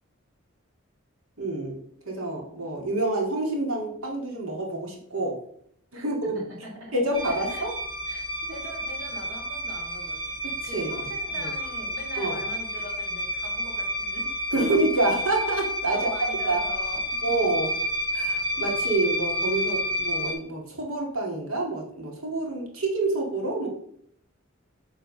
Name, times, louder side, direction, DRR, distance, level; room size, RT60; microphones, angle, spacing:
voice 1, 1.4-1.8 2.1-5.3 5.9-6.4 6.9-7.7 10.4-10.9 11.4-11.5 12.2-12.4 14.5-16.6 17.2-17.7 18.1-23.7, right 2 dB, 90° right, -1 dB, 2.1 m, -27 dB
voice 2, 6.6-7.7 8.1-14.3 15.9-17.2, right 1 dB, 70° right, -2 dB, 3.0 m, -42 dB
sound 1, 7.1-20.3, equal, 25° right, 2.2 m, -30 dB
7.8 x 3.9 x 5.3 m, 0.68 s
head